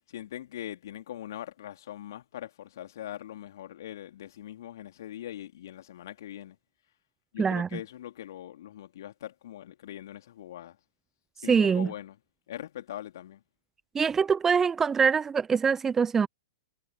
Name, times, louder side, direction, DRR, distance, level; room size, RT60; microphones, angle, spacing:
voice 1, 0.1-6.6 7.3-10.8 11.4-12.2 12.5-13.4, left 12 dB, 55° left, 3.3 m, -41 dB
voice 2, 7.4-7.8 11.5-11.9 13.9-16.3, right 6 dB, 15° right, 0.7 m, -24 dB
figure-of-eight pair, 105°, 2 cm